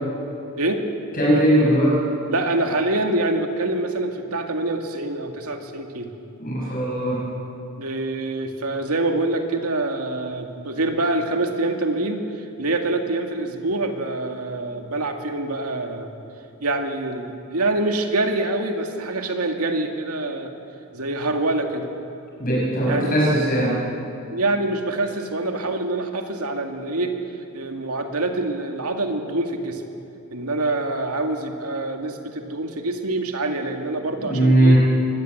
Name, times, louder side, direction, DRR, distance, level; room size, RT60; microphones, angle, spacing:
voice 1, 0.6-0.9 2.3-6.1 7.8-16.1 16.6-20.5 20.9-21.9 22.9-23.2 24.3-27.2 27.5-29.8 30.3-34.8, right 2 dB, 85° right, 4 dB, 2.2 m, -25 dB
voice 2, 1.1-2.0 6.4-7.2 22.4-23.8 34.2-34.8, right 1 dB, 40° left, -6 dB, 5.9 m, -19 dB
24.0 x 18.5 x 8.0 m, 2.8 s
head